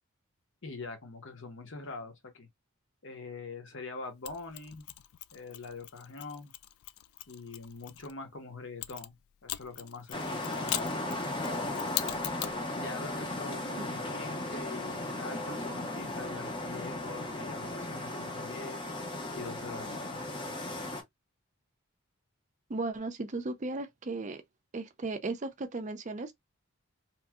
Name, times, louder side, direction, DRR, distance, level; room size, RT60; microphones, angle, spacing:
voice 1, 0.6-2.5 3.0-4.9 5.3-6.5 7.3-9.2 9.4-10.8 11.5-11.8 12.8-18.9 19.3-20.2, left 3 dB, 60° left, 0.9 m, -44 dB
Mechanisms, 4.2-8.1 8.8-12.6, left 14 dB, 75° left, 0.3 m, -40 dB
sound 1, 10.1-21.0, left 2 dB, 25° left, 0.6 m, -36 dB
voice 2, 22.7-24.4 24.7-26.3, right 3 dB, 35° right, 0.5 m, -36 dB
3.0 x 2.6 x 2.3 m
head